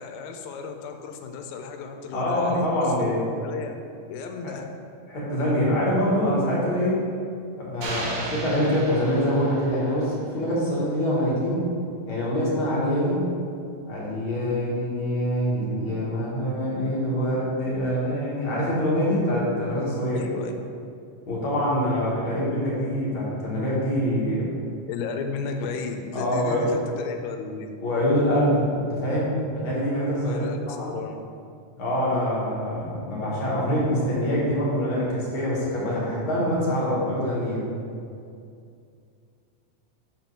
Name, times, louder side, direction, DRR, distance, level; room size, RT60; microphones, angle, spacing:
voice 1, 0.0-2.7 3.0-3.8 4.1-4.7 20.2-20.5 24.9-27.7 30.2-31.2, left 5 dB, 85° left, 5 dB, 2.0 m, -34 dB
voice 2, 2.1-3.2 4.4-4.5 5.1-7.1 7.6-11.6 12.1-13.2 13.9-20.2 21.3-24.5 26.1-26.7 27.8-30.9 31.8-37.7, equal, 50° left, -6 dB, 1.9 m, -25 dB
sound 1, 7.8-10.0, right 2 dB, 75° right, 2.5 m, -35 dB
5.4 x 4.5 x 5.3 m, 2.4 s
omnidirectional pair, 3.4 m